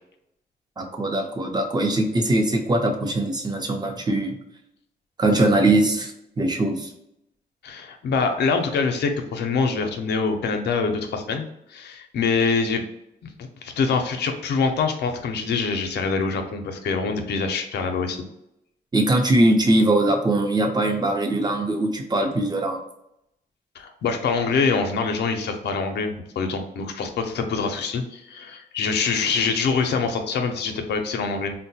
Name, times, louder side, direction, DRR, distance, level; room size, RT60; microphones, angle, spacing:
voice 1, 0.8-4.3 5.2-6.1 6.4-6.9 18.9-22.8, right 1 dB, 25° right, 3 dB, 0.7 m, -21 dB
voice 2, 7.6-11.4 11.7-12.8 13.4-18.2 23.8-31.5, left 4 dB, 85° left, 5 dB, 0.5 m, -25 dB
3.8 x 2.1 x 2.7 m, 0.80 s
cardioid pair, 90°, 17 cm